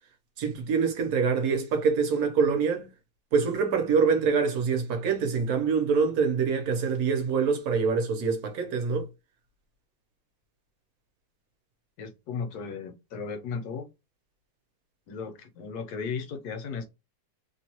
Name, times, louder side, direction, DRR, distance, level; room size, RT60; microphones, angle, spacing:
voice 1, 0.4-2.9 3.3-9.1, right 5 dB, 65° right, 1.1 m, -25 dB
voice 2, 12.0-13.9 15.1-16.8, left 5 dB, 70° left, 1.1 m, -35 dB
3.0 x 2.2 x 2.8 m
omnidirectional pair, 1.9 m